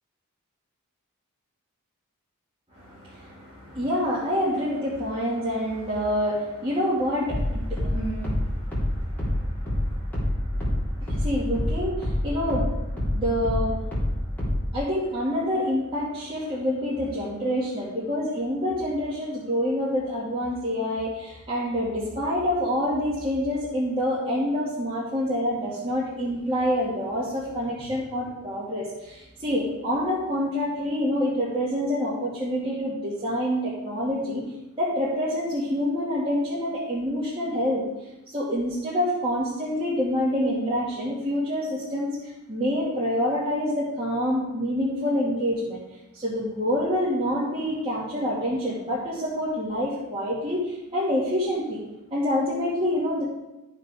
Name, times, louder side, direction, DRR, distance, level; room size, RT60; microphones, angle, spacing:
voice 1, 2.7-14.1 14.7-34.4 34.8-37.8 38.3-42.2 42.5-45.8 46.1-51.8 52.1-53.2, equal, 25° right, -8 dB, 2.2 m, -27 dB
sound 1, 7.3-12.2 12.5-14.7, left 1 dB, 5° left, 3.6 m, -26 dB
13.0 x 5.2 x 5.0 m, 0.98 s
head